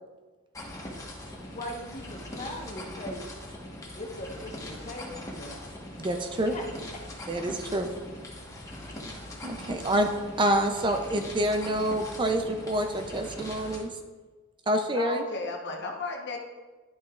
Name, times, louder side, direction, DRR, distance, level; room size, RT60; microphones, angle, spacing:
sound 1, 0.5-13.8, left 1 dB, 15° left, 1.2 m, -41 dB
voice 1, 1.5-3.2 3.9-5.7 6.5-6.6, left 1 dB, 35° left, 0 dB, 1.2 m, -39 dB
voice 2, 6.0-6.6 7.3-7.9 9.4-10.1 10.4-13.9 14.7-15.2, right 1 dB, 25° right, 5 dB, 0.5 m, -27 dB
voice 3, 14.9-16.4, left 3 dB, 55° left, 1 dB, 1.1 m, -34 dB
11.0 x 6.2 x 2.4 m, 1.3 s
head